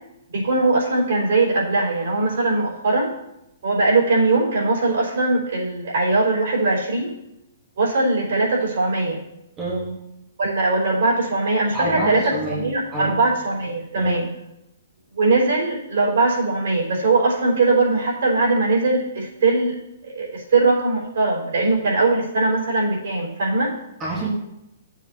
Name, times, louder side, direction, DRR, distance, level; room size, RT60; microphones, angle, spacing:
voice 1, 0.3-3.1 3.6-7.2 7.8-9.2 10.4-14.3 15.1-23.7, right 3 dB, 65° right, -3 dB, 4.0 m, -20 dB
voice 2, 9.6-9.9 11.7-13.2 14.0-14.2 24.0-24.3, right 2 dB, 10° right, -6 dB, 1.1 m, -27 dB
14.0 x 7.4 x 2.8 m, 0.86 s
hypercardioid pair, 180°, 0 cm